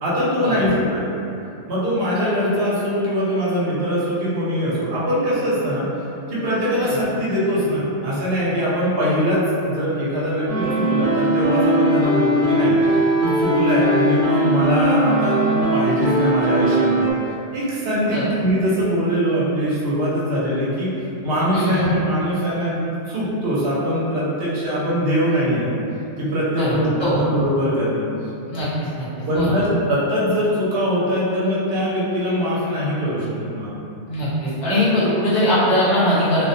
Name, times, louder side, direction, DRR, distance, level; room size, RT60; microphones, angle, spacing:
voice 1, 0.0-1.2 1.7-5.8 6.3-12.7 13.2-17.1 17.5-20.9 21.2-25.7 26.2-28.0 29.3-33.7, equal, 55° right, -8 dB, 0.8 m, -22 dB
sound 1, 10.5-17.1, right 1 dB, 85° right, 1.0 m, -19 dB
voice 2, 21.5-21.9 26.5-27.2 28.5-29.1 29.3-29.6 34.1-36.5, equal, 45° left, -11 dB, 0.6 m, -21 dB
2.3 x 2.1 x 2.6 m, 2.7 s
omnidirectional pair, 1.4 m